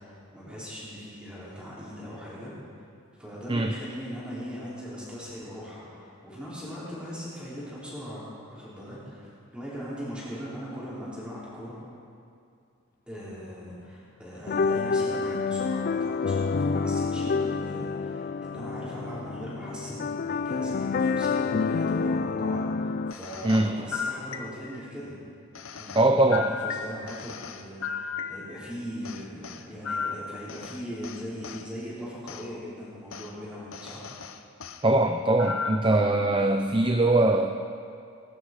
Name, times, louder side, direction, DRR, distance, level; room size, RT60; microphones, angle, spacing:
voice 1, 0.0-2.9 3.2-9.3 9.5-11.8 13.1-25.2 25.7-34.1, equal, 5° right, -9 dB, 5.1 m, -40 dB
sound 1, 14.5-23.1, left 4 dB, 40° left, 0.3 m, -28 dB
sound 2, 23.1-24.9 25.5-28.7 29.0-31.7 32.3-32.5 33.1-33.3 33.7-34.8 35.4-36.0, left 6 dB, 70° left, 0.8 m, -36 dB
voice 2, 25.9-26.5 34.8-37.5, right 2 dB, 25° right, 4 dB, 0.6 m, -22 dB
22.0 x 12.0 x 5.0 m, 2.4 s
head